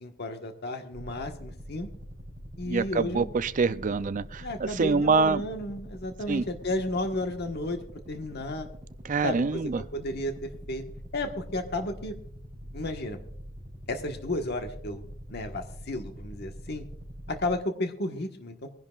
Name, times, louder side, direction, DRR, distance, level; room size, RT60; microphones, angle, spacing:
voice 1, 0.0-1.9 2.6-3.3 4.4-8.7 9.2-10.8 11.1-12.1 12.7-13.2 13.9-15.0 15.3-16.9 17.3-18.7, left 1 dB, 55° left, 5 dB, 1.4 m, -33 dB
sound 1, 0.9-17.6, equal, 20° right, 4.6 m, -44 dB
voice 2, 2.7-5.4 6.3-6.4 9.0-9.8, right 4 dB, 40° right, 13 dB, 0.5 m, -25 dB
23.0 x 11.0 x 2.4 m, 0.65 s
head